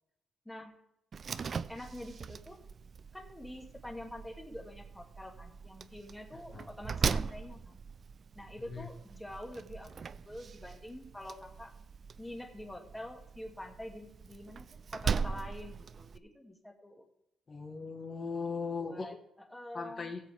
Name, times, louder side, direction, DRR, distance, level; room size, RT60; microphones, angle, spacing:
Slam, 1.1-16.2, right 6 dB, 45° right, 0.5 m, -40 dB
voice 1, 1.7-2.6 3.1-7.8 8.3-11.7 12.2-17.0 18.8-20.2, left 1 dB, 10° left, 3 dB, 2.1 m, -46 dB
voice 2, 17.5-19.2 19.7-20.2, left 4 dB, 35° left, 2 dB, 1.5 m, -38 dB
17.0 x 7.8 x 3.5 m, 0.81 s
cardioid pair, 90°, 0 cm